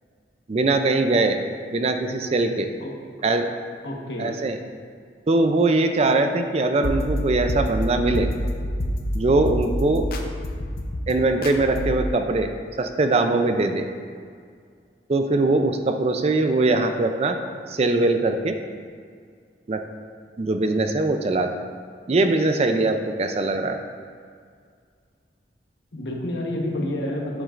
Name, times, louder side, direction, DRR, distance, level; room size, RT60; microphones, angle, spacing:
voice 1, 0.5-1.4 1.7-2.7 3.2-3.5 4.2-4.6 5.3-8.3 9.1-10.1 11.1-12.5 12.8-13.9 15.1-17.4 17.7-18.6 19.7-19.8 20.4-21.5 22.1-23.8, right 2 dB, 35° right, 6 dB, 0.4 m, -21 dB
voice 2, 3.8-4.4 25.9-27.4, left 1 dB, 75° left, -1 dB, 1.1 m, -29 dB
sound 1, 6.8-12.1, equal, 55° left, 0.6 m, -27 dB
8.2 x 7.1 x 2.5 m, 2.1 s
head